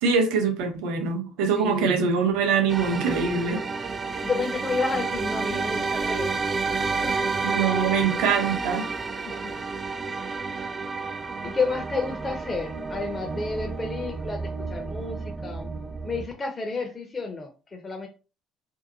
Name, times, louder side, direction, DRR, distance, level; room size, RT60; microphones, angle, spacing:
voice 1, 0.0-3.6 7.4-8.9, right 5 dB, 70° right, 0.6 m, -23 dB
voice 2, 1.6-2.0 4.1-6.5 7.0-7.3 9.2-9.5 10.2-10.7 11.4-15.7 16.0-18.1, left 4 dB, 30° left, 0.6 m, -31 dB
sound 1, 2.7-16.2, right 4 dB, 30° right, 0.4 m, -30 dB
2.7 x 2.2 x 2.5 m
hypercardioid pair, 60°, 0 cm